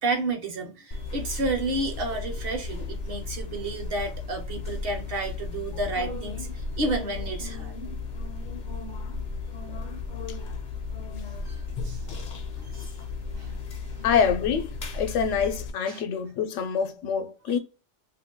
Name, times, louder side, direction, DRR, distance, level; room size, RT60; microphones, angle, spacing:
voice 1, 0.0-7.7 11.4-12.0 12.5-12.9 13.3-13.5 15.9-16.0 17.5-17.6, right 2 dB, 55° right, 0.8 m, -31 dB
sound 1, 0.9-15.7, left 4 dB, 50° left, 0.6 m, -35 dB
voice 2, 14.0-17.6, left 7 dB, 80° left, 0.9 m, -26 dB
2.6 x 2.2 x 3.6 m
omnidirectional pair, 1.3 m